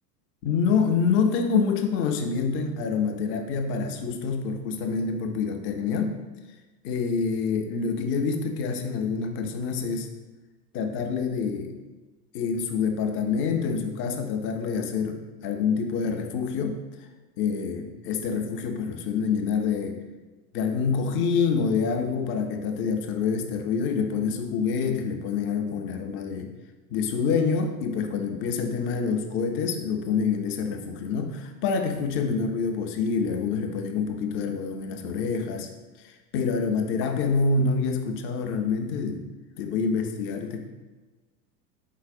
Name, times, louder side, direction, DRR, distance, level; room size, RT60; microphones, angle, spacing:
voice 1, 0.4-6.2 6.8-10.1 10.7-11.7 12.3-16.8 17.4-20.0 20.5-26.5 26.9-35.7 36.0-39.3 39.6-40.6, left 5 dB, 30° left, 4 dB, 0.3 m, -26 dB
4.7 x 4.0 x 2.4 m, 1.2 s
hypercardioid pair, 100°, 48 cm